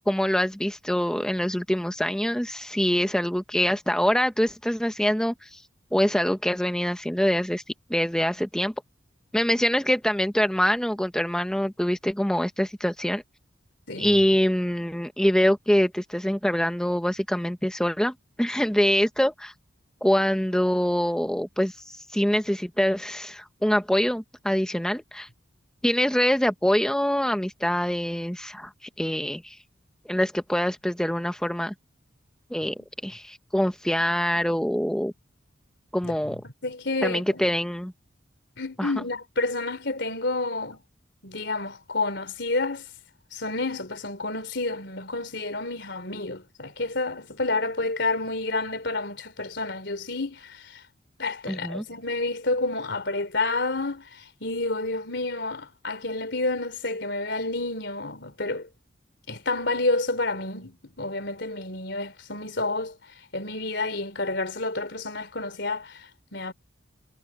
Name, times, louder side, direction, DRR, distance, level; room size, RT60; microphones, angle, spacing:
voice 1, 0.1-5.6 5.9-7.6 7.9-8.7 9.3-13.2 14.0-19.5 20.0-25.3 25.8-29.6 30.1-31.7 32.5-35.1 35.9-36.4 37.0-37.9 38.8-38.9 51.5-51.8, equal, 5° left, 0.7 m, -24 dB
voice 2, 13.9-14.2 36.0-36.1 36.6-37.5 38.6-40.8 41.2-42.9 43.3-50.8 51.2-58.7 59.3-62.9 63.3-66.5, left 2 dB, 60° left, 4.0 m, -29 dB
head